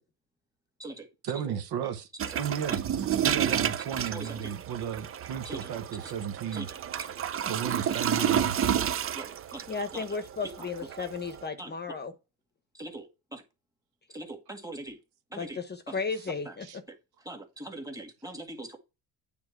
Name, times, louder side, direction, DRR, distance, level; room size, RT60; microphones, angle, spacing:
voice 1, 1.2-2.1 2.4-2.8 3.2-6.7 7.5-8.6 16.6-16.8, right 8 dB, 60° right, 1.1 m, -34 dB
sound 1, 2.2-11.5, right 9 dB, 30° right, 0.6 m, -31 dB
voice 2, 4.0-4.5 5.5-5.6 6.0-6.1 6.5-6.8 9.2-9.7 9.9-10.2 10.6-10.7 11.6-11.7 12.7-13.4 14.1-15.0 15.3-15.6 15.9-16.0 16.5-16.6 16.9-17.0 17.2-18.8, right 2 dB, 10° right, 1.9 m, -41 dB
voice 3, 9.7-12.1 15.4-16.8, left 4 dB, 25° left, 0.9 m, -34 dB
8.9 x 3.4 x 4.6 m
cardioid pair, 100°, 42 cm